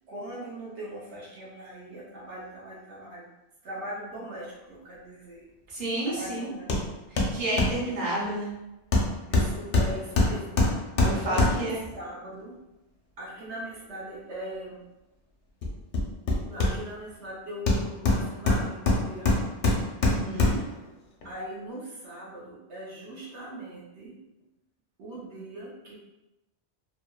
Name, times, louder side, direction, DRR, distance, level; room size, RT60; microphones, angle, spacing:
voice 1, 0.1-3.3 3.6-5.4 6.0-6.8 9.3-11.0 11.2-12.6 13.2-14.9 16.4-19.5 21.2-24.2 25.0-25.9, right 1 dB, 85° right, -5 dB, 1.0 m, -40 dB
voice 2, 5.7-6.5 7.3-8.5 11.0-11.8 20.0-20.6, right 1 dB, 50° right, -7 dB, 1.0 m, -30 dB
Hammer, 6.7-6.9 7.2-7.8 8.9-11.8 15.6-17.1 17.7-20.8 21.2-21.3, left 2 dB, 55° left, 0.6 m, -24 dB
2.7 x 2.0 x 2.2 m, 0.97 s
omnidirectional pair, 1.1 m